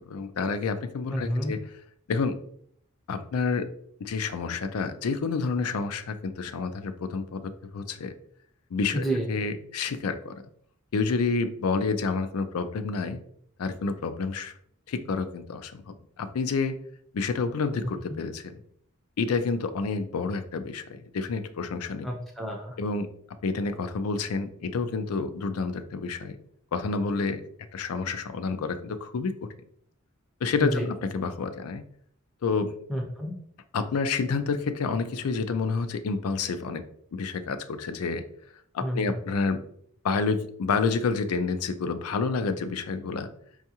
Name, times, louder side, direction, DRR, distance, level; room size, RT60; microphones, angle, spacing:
voice 1, 0.0-1.6 2.1-2.4 3.1-3.7 4.0-8.1 8.7-10.4 10.9-13.2 13.6-14.5 14.9-16.8 17.1-18.4 19.2-22.1 22.8-23.1 23.4-26.4 26.7-27.4 27.7-29.5 30.4-31.8 32.4-32.7 33.7-36.8 37.1-38.2 38.7-39.6 40.0-43.3, left 4 dB, 80° left, 10 dB, 0.4 m, -29 dB
voice 2, 1.1-1.5 8.9-9.3 22.0-22.8 30.6-30.9 32.9-33.3 38.8-39.2, equal, ahead, -2 dB, 0.5 m, -29 dB
5.4 x 2.4 x 2.8 m, 0.65 s
head